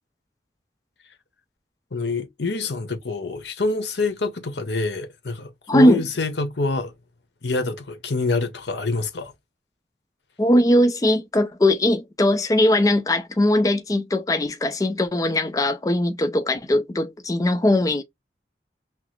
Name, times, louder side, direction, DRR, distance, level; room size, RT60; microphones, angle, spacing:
voice 1, 1.9-6.9 7.4-9.3, left 3 dB, 80° left, 0.9 m, -26 dB
voice 2, 5.7-6.0 10.4-18.0, left 1 dB, 20° left, 0.4 m, -20 dB
5.8 x 2.0 x 3.1 m
head